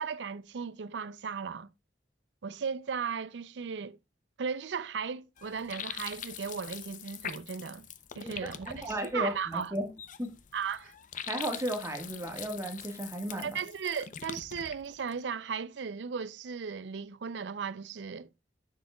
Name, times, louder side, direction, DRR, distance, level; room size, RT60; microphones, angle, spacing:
voice 1, 0.0-1.7 2.4-4.0 4.4-7.9 8.2-9.7 10.5-10.9 13.4-18.3, right 6 dB, 80° right, 0.5 m, -36 dB
sound 1, 5.4-15.2, left 8 dB, 45° left, 0.6 m, -43 dB
voice 2, 8.2-9.9 10.2-10.3 11.3-13.6, right 1 dB, 15° right, 1.5 m, -34 dB
10.0 x 7.2 x 2.3 m
head